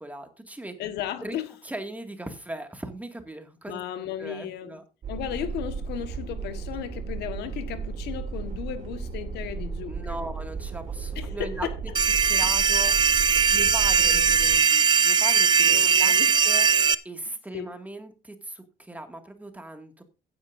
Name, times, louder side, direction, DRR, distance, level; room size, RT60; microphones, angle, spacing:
voice 1, 0.0-0.8 1.2-1.4 1.6-4.8 9.8-11.7 12.2-13.2 13.5-16.1 16.5-16.7 17.0-20.0, right 1 dB, 10° right, 2.1 m, -38 dB
voice 2, 0.8-1.5 3.7-4.8 5.1-10.3 11.1-11.8 13.5-13.6 13.9-14.3 15.7-16.4 17.5-17.8, left 10 dB, 80° left, 1.5 m, -35 dB
sound 1, 5.0-14.6, right 5 dB, 45° right, 3.7 m, -34 dB
sound 2, 11.9-16.9, right 6 dB, 25° right, 0.6 m, -20 dB
15.5 x 9.7 x 2.6 m
cardioid pair, 110°, 17 cm